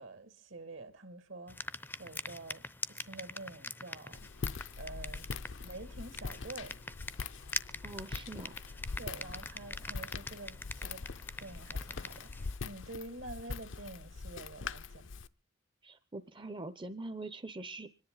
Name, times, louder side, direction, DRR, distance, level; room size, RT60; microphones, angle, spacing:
voice 1, 0.0-4.3 4.8-5.3 5.6-6.7 9.0-11.1 11.4-15.1, right 2 dB, 70° right, 2.4 m, -48 dB
sound 1, 1.5-12.6, left 3 dB, 10° left, 0.6 m, -44 dB
Walk footsteps, 4.1-15.3, left 4 dB, 65° left, 0.7 m, -43 dB
voice 2, 7.8-8.5 15.8-17.9, right 2 dB, 25° right, 0.8 m, -43 dB
26.0 x 10.5 x 3.9 m
head